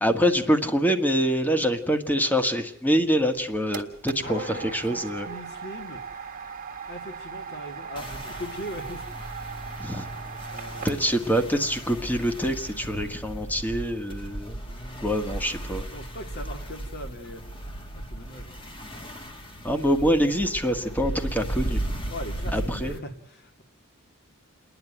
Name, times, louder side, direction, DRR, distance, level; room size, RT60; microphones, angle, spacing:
voice 1, 0.0-5.3 9.8-10.1 10.8-14.6 15.0-15.9 19.6-21.8 22.5-23.0, equal, 10° left, 6 dB, 1.7 m, -25 dB
sound 1, 3.2-11.3, right 6 dB, 40° right, 1.7 m, -39 dB
voice 2, 4.2-6.0 6.9-9.0 10.5-11.0 14.7-15.2 15.9-17.4 17.9-18.6 22.1-23.1 23.4-23.6, left 1 dB, 50° left, 5 dB, 2.7 m, -39 dB
sound 2, 8.0-23.0, right 1 dB, 25° left, 1.9 m, -36 dB
29.0 x 10.5 x 9.2 m, 0.74 s
head